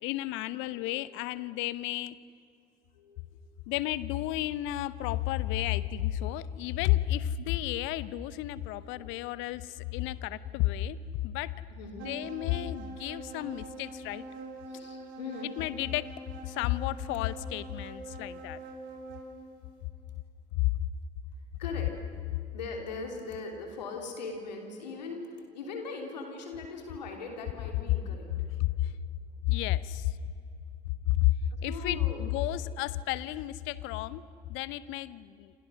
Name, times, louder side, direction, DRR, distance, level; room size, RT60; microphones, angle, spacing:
voice 1, 0.0-2.2 3.7-11.0 11.2-11.5 12.0-14.2 15.6-16.1 16.4-18.6 20.5-20.7 28.6-28.9 29.4-30.1 31.1-31.3 31.6-34.2 34.5-35.5, left 15 dB, 65° left, 17 dB, 0.9 m, -31 dB
voice 2, 0.7-1.1 1.4-1.5 2.9-3.2 5.7-6.4 8.8-9.2 11.7-12.1 14.7-15.5 21.6-21.9 22.5-28.5 31.5-32.3, left 3 dB, 80° left, 3 dB, 3.4 m, -41 dB
sound 1, 12.0-19.5, right 2 dB, 65° right, 3.5 m, -44 dB
29.0 x 26.5 x 6.4 m, 2.5 s
figure-of-eight pair, 50°, 21 cm